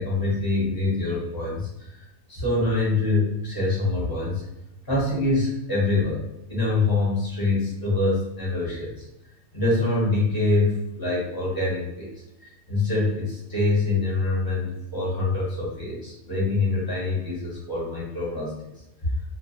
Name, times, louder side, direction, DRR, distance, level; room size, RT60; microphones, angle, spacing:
voice 1, 0.0-4.4 4.9-6.2 6.5-9.0 9.5-18.5 19.0-19.1, left 2 dB, 20° left, -7 dB, 0.7 m, -25 dB
2.3 x 2.1 x 2.7 m, 0.88 s
omnidirectional pair, 1.4 m